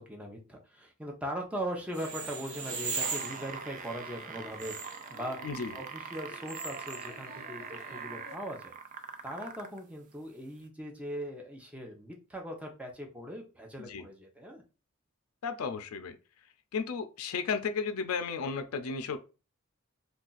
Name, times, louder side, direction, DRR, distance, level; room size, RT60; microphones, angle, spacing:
voice 1, 0.1-5.4 5.7-7.6 7.9-8.7 9.2-14.6, equal, 5° right, 0.6 m, -40 dB
sound 1, 1.9-8.4, right 4 dB, 70° right, 0.8 m, -41 dB
sound 2, 3.0-9.8 10.6-10.7, right 6 dB, 40° right, 0.4 m, -43 dB
voice 2, 5.4-5.8 13.8-14.1 15.4-16.2 16.7-19.2, left 5 dB, 90° left, 0.4 m, -34 dB
2.4 x 2.3 x 3.9 m
head